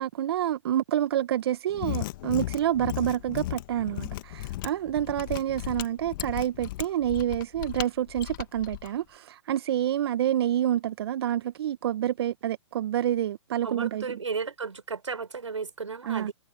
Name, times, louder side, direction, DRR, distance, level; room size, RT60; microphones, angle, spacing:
voice 1, 0.0-14.2 16.0-16.3, right 11 dB, 55° right, 1.1 m, -28 dB
Mechanisms, 1.7-8.9, left 17 dB, 45° left, 1.6 m, -35 dB
voice 2, 13.6-16.3, right 5 dB, 85° right, 4.8 m, -34 dB
hypercardioid pair, 130°, 15 cm